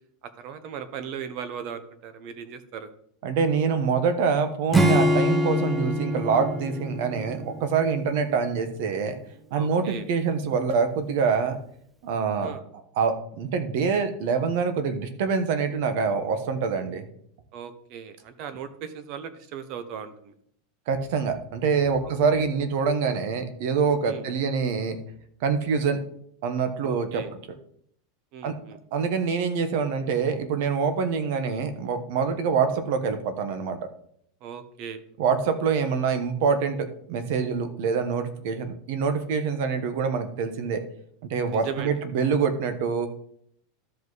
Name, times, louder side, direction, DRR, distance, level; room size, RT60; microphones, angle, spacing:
voice 1, 0.4-2.9 9.5-10.0 12.4-12.6 17.5-20.3 22.3-22.5 24.0-24.2 26.8-27.3 28.3-28.8 34.4-35.0 41.5-41.9, right 7 dB, 40° right, 11 dB, 0.9 m, -38 dB
voice 2, 3.2-9.1 9.5-11.6 12.0-12.5 13.0-17.0 20.9-25.0 25.4-26.0 26.4-27.2 28.4-28.5 28.9-33.8 35.2-40.8 41.2-43.1, right 5 dB, 55° right, 9 dB, 1.2 m, -25 dB
Acoustic guitar / Strum, 4.7-8.2, equal, 10° right, 0.6 m, -24 dB
13.0 x 5.3 x 4.1 m, 0.67 s
supercardioid pair, 165°, 0 cm